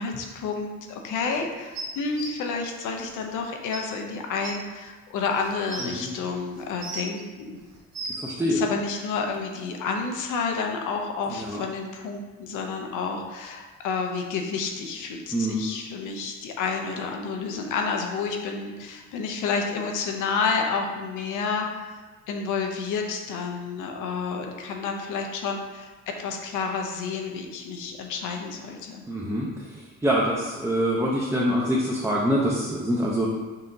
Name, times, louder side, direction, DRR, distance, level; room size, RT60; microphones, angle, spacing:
voice 1, 0.0-7.6 8.4-22.0 22.3-29.1, left 5 dB, 85° left, 3 dB, 0.6 m, -30 dB
sound 1, 1.7-2.3 3.3-3.4 3.7-3.8 4.4-4.5 5.3-5.9 6.6-7.2 7.7-8.3 9.3-9.4, right 2 dB, 60° right, 0.8 m, -35 dB
voice 2, 8.2-8.6 11.5-11.6 15.3-15.6 29.1-29.5 30.0-33.3, equal, 10° right, -5 dB, 0.5 m, -24 dB
5.4 x 2.8 x 2.6 m, 1.3 s
cardioid pair, 90°, 30 cm